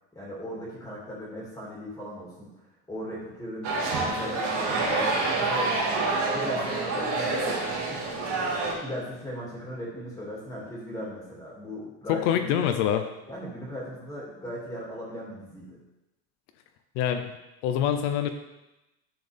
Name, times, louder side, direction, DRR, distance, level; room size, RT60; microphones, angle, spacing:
voice 1, 0.1-5.7 6.3-8.1 8.8-12.5 13.3-15.8, equal, 10° left, -5 dB, 2.4 m, -38 dB
sound 1, 3.6-8.7, right 3 dB, 45° right, 2.1 m, -27 dB
voice 2, 12.1-13.1 17.0-17.3 17.6-18.3, left 9 dB, 70° left, 7 dB, 0.8 m, -25 dB
10.0 x 6.2 x 3.5 m, 0.99 s
supercardioid pair, 135°, 36 cm